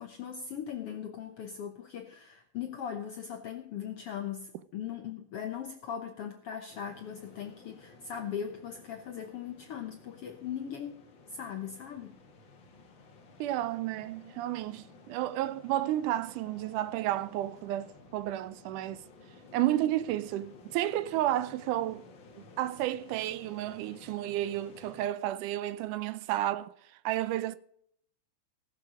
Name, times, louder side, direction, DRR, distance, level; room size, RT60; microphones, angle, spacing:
voice 1, 0.0-12.2, left 8 dB, 70° left, 1.4 m, -39 dB
sound 1, 6.7-25.1, left 3 dB, 45° left, 2.0 m, -55 dB
voice 2, 13.4-19.0 19.5-22.1 22.6-26.7 27.1-27.6, right 14 dB, 80° right, 2.0 m, -31 dB
18.5 x 7.0 x 4.9 m
omnidirectional pair, 3.8 m